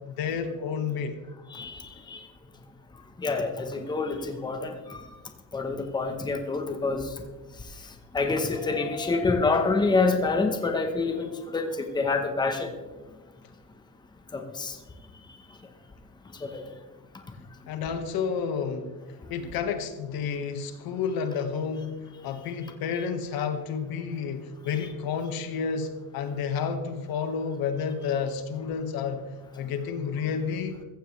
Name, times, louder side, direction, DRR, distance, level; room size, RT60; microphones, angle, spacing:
voice 1, 0.1-1.2 17.7-19.0 19.3-29.2 29.6-30.8, left 6 dB, 80° left, 1.6 m, -30 dB
voice 2, 3.2-4.7 5.5-7.0 8.1-12.7 14.3-14.7, left 3 dB, 10° left, 1.0 m, -26 dB
15.0 x 15.0 x 3.3 m
cardioid pair, 175°, 36 cm